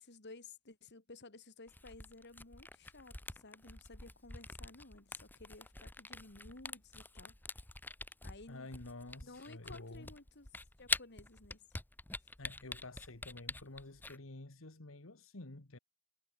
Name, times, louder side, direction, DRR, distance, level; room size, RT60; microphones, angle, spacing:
voice 1, 0.0-7.5 8.2-8.7 9.2-10.5 10.8-11.6, left 3 dB, 55° left, 2.5 m, -55 dB
Camera, 1.7-14.2, left 2 dB, 10° left, 0.7 m, -45 dB
voice 2, 8.5-10.1 12.4-15.8, left 2 dB, 75° left, 1.9 m, -50 dB
head